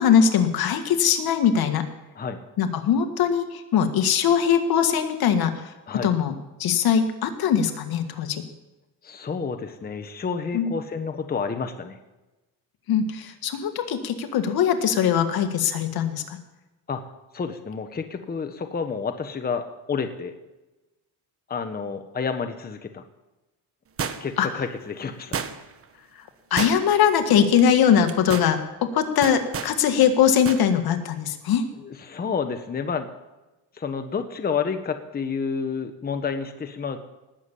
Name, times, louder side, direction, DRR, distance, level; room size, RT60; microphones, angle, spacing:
voice 1, 0.0-1.8 2.6-6.3 6.6-8.4 10.5-10.7 12.9-16.4 24.4-24.5 26.5-31.6, left 8 dB, 60° left, 7 dB, 1.9 m, -21 dB
voice 2, 9.0-12.0 16.9-17.0 17.3-20.3 21.5-23.0 24.2-25.4 31.8-33.1 33.7-37.0, left 5 dB, 20° left, 8 dB, 1.1 m, -30 dB
sound 1, 24.0-24.5 25.3-25.8 26.6-27.1 27.4-27.6 28.0-28.5 29.2-29.8 30.4-30.6 31.0-31.1, right 6 dB, 35° right, 1.2 m, -31 dB
19.5 x 7.2 x 8.4 m, 1.1 s
cardioid pair, 130°, 41 cm